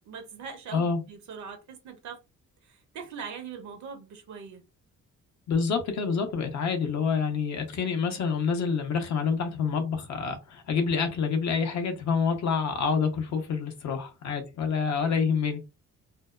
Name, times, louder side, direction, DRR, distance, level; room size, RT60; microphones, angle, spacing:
voice 1, 0.0-2.2 2.6-4.6, right 6 dB, 70° right, 0.8 m, -41 dB
voice 2, 5.5-15.7, left 5 dB, 65° left, 0.8 m, -27 dB
2.6 x 2.1 x 2.3 m
cardioid pair, 90°, 30 cm